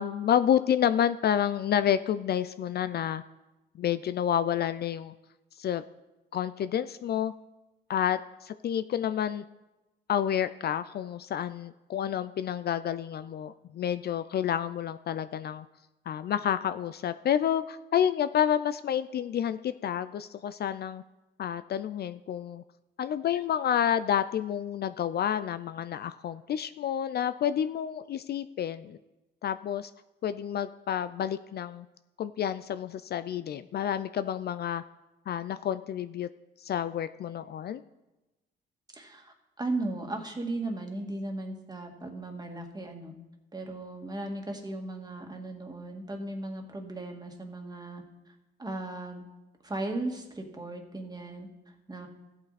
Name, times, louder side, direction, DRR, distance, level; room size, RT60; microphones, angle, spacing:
voice 1, 0.0-3.2 3.8-5.1 5.6-5.8 6.3-7.3 7.9-9.4 10.1-15.7 16.1-21.0 21.4-22.6 23.0-29.0 29.4-29.9 30.2-31.9 32.2-34.8 35.3-36.3 36.6-37.8, left 9 dB, 55° left, 13 dB, 0.4 m, -29 dB
voice 2, 38.9-43.2 43.5-48.3 48.6-49.3 49.6-51.5 51.9-52.1, right 2 dB, 20° right, 3 dB, 2.0 m, -36 dB
14.0 x 8.5 x 4.1 m, 1.0 s
cardioid pair, 90°, 20 cm